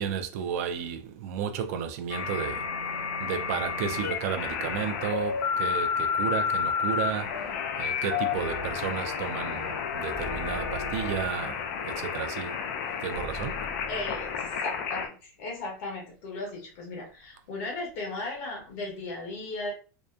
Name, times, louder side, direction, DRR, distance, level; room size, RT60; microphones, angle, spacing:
voice 1, 0.0-2.7 3.2-7.5 7.8-12.6 13.0-13.6, right 7 dB, 55° right, 0.4 m, -33 dB
sound 1, 2.1-15.1, left 6 dB, 65° left, 0.4 m, -31 dB
sound 2, 10.1-11.6 13.1-14.6, left 2 dB, 5° right, 0.7 m, -44 dB
voice 2, 13.9-19.7, left 2 dB, 50° left, 0.9 m, -36 dB
2.7 x 2.1 x 2.3 m
supercardioid pair, 180°, 10 cm